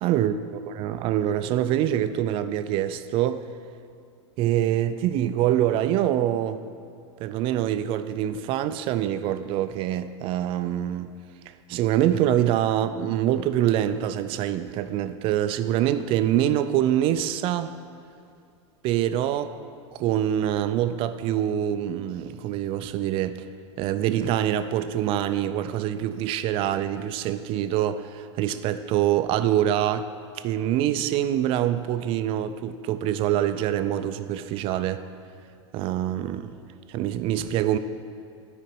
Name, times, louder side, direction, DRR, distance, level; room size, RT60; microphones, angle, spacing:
voice 1, 0.0-3.5 4.4-6.6 7.2-11.1 11.5-17.7 18.8-19.6 19.9-23.5 23.8-30.1 30.3-35.0 35.7-36.6 36.9-37.8, right 11 dB, 35° right, 11 dB, 0.4 m, -25 dB
9.7 x 5.0 x 4.6 m, 2.4 s
supercardioid pair, 135°, 15 cm